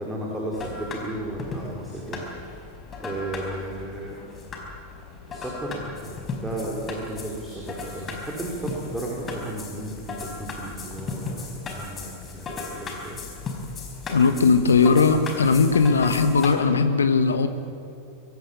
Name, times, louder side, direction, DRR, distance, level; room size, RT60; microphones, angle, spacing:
voice 1, 0.0-2.5 3.0-4.1 5.3-13.2, right 1 dB, 10° right, -3 dB, 4.7 m, -34 dB
sound 1, 0.5-16.5, left 3 dB, 25° left, 4.8 m, -36 dB
voice 2, 14.1-17.5, left 4 dB, 70° left, 9 dB, 1.4 m, -19 dB
24.0 x 17.0 x 8.9 m, 2.8 s
figure-of-eight pair, 90°, 0 cm